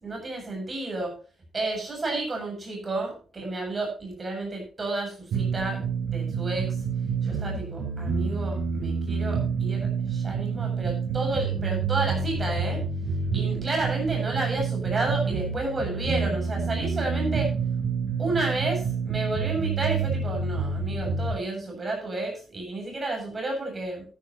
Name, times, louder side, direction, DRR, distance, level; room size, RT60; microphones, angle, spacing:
voice 1, 0.0-1.1 1.5-5.8 6.1-6.8 7.3-12.8 13.3-17.5 18.2-24.0, right 2 dB, 25° right, 1 dB, 7.2 m, -31 dB
sound 1, 5.3-21.3, right 5 dB, 75° right, 5.9 m, -28 dB
13.0 x 12.5 x 3.0 m, 0.37 s
wide cardioid pair, 150°, 0 cm